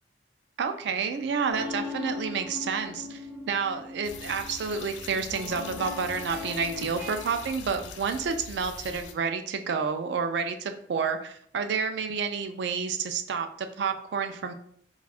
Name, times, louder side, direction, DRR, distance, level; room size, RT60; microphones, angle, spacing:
voice 1, 0.6-3.2 3.5-14.5, right 5 dB, 70° right, 7 dB, 0.3 m, -30 dB
sound 1, 1.5-7.5, left 3 dB, 10° right, 0.5 m, -39 dB
sound 2, 4.0-9.1, left 5 dB, 75° left, 0.4 m, -43 dB
2.4 x 2.3 x 3.4 m, 0.64 s
head